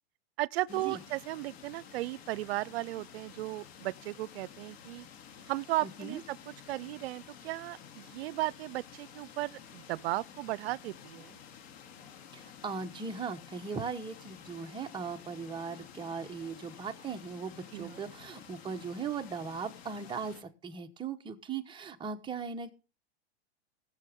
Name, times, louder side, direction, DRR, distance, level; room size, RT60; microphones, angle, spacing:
voice 1, 0.4-5.1 5.5-11.4 17.7-18.0, right 17 dB, 70° right, 0.5 m, -36 dB
sound 1, 0.7-20.4, left 8 dB, 70° left, 2.8 m, -52 dB
voice 2, 12.3-22.7, right 5 dB, 15° right, 1.1 m, -38 dB
20.5 x 7.0 x 3.6 m
supercardioid pair, 135°, 32 cm